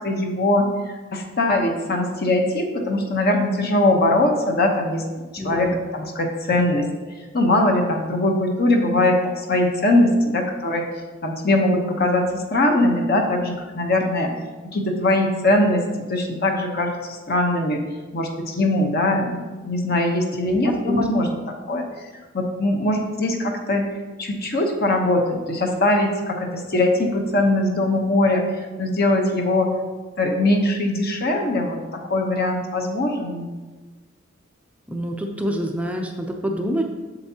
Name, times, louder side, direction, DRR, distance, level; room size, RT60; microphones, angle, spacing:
voice 1, 0.0-5.0 5.3-6.9 7.3-9.2 9.5-10.9 11.2-14.4 14.6-15.8 16.1-17.8 18.1-21.4 21.7-21.9 22.3-23.9 24.2-28.4 28.8-29.7 30.2-33.5, left 1 dB, 50° left, 3 dB, 0.9 m, -21 dB
voice 2, 5.4-5.8 20.4-21.0 34.9-36.8, equal, 5° right, 2 dB, 0.5 m, -27 dB
8.0 x 7.0 x 2.8 m, 1.3 s
head